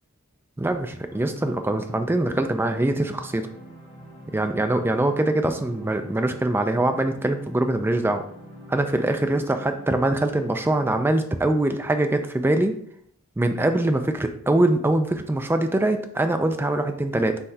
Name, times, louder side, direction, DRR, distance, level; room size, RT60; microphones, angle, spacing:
voice 1, 0.6-3.5 4.3-8.2 8.7-12.8 13.4-17.4, right 1 dB, 10° right, 7 dB, 0.3 m, -23 dB
sound 1, 1.1-11.1, equal, 20° left, 1.0 m, -44 dB
5.6 x 3.1 x 2.7 m, 0.68 s
head